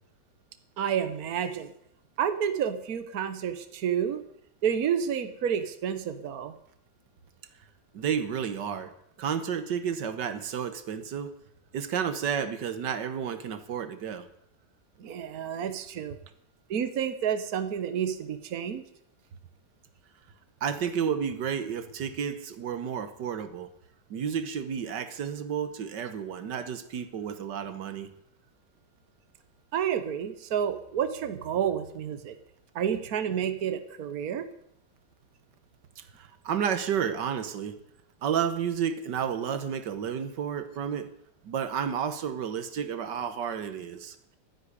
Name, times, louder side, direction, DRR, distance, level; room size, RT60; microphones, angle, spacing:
voice 1, 0.8-1.7 2.2-4.2 4.6-6.5 15.0-16.2 16.7-18.8 29.7-32.3 32.7-34.5, right 8 dB, 60° right, 9 dB, 1.5 m, -30 dB
voice 2, 7.9-8.9 9.2-11.3 11.7-14.3 20.6-23.7 24.1-28.1 36.0-37.8 38.2-41.1 41.4-44.2, right 8 dB, 90° right, 10 dB, 1.8 m, -31 dB
12.5 x 10.0 x 9.7 m, 0.73 s
omnidirectional pair, 1.8 m